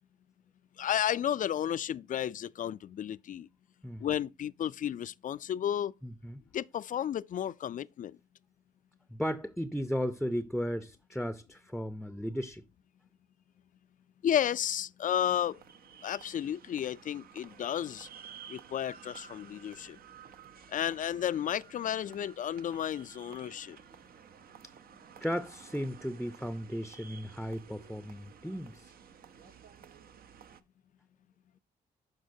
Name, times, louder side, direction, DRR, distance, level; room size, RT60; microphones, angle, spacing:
voice 1, 0.8-3.5 4.0-5.9 6.5-8.2 14.2-15.6 16.0-18.1 18.5-20.0 20.7-23.8, left 10 dB, 55° left, 0.4 m, -32 dB
voice 2, 6.0-6.4 9.1-12.6 25.2-28.9, equal, ahead, 0.6 m, -35 dB
sound 1, 15.1-30.6, right 7 dB, 65° right, 0.7 m, -53 dB
11.5 x 4.3 x 2.7 m
cardioid pair, 70°, 16 cm